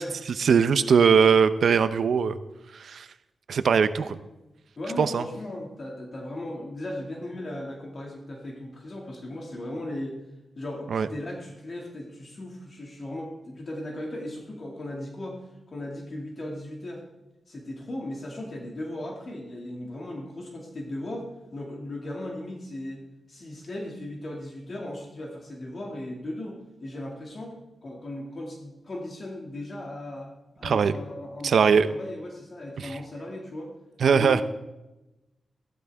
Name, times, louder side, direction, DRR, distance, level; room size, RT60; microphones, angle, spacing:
voice 1, 0.4-2.4 2.7-3.1 3.5-4.2 5.0-5.2 10.9-11.1 30.6-30.9 31.4-31.9 32.8-32.9 34.0-34.4, right 6 dB, 75° right, 12 dB, 0.6 m, -20 dB
voice 2, 4.8-10.2 10.5-15.4 15.7-17.0 17.5-27.5 27.8-33.7 34.1-34.4, left 1 dB, 45° left, 0 dB, 2.2 m, -37 dB
14.5 x 12.0 x 3.5 m, 0.99 s
wide cardioid pair, 95°, 0 cm